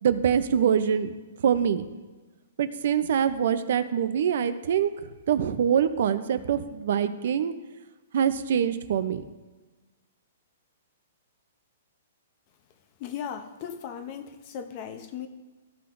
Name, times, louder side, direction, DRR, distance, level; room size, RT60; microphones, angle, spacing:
voice 1, 0.0-1.1 1.4-1.9 2.6-4.9 5.3-7.5 8.1-9.2, right 8 dB, 65° right, 12 dB, 0.6 m, -24 dB
voice 2, 13.0-15.3, left 8 dB, 35° left, 8 dB, 0.7 m, -37 dB
14.5 x 5.8 x 2.6 m, 1.2 s
hypercardioid pair, 155°, 0 cm